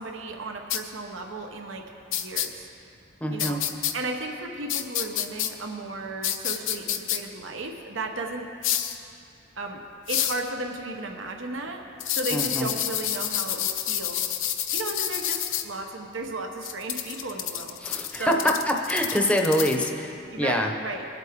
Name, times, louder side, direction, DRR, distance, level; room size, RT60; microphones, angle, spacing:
voice 1, 0.0-2.7 3.3-3.6 3.9-8.5 9.6-9.8 10.1-11.8 12.1-14.2 14.7-17.8 18.1-18.5 20.3-21.0, right 2 dB, 75° right, 3 dB, 1.0 m, -34 dB
sound 1, 0.7-0.8 2.1-2.5 3.4-3.9 4.7-5.5 6.2-7.2 8.6-9.0 10.1-10.4 12.0-15.6 16.6-19.9, left 11 dB, 75° left, 0.7 m, -28 dB
voice 2, 3.2-3.6 12.3-12.7 17.8-20.7, equal, 5° left, 2 dB, 0.8 m, -25 dB
21.5 x 8.1 x 3.7 m, 2.7 s
head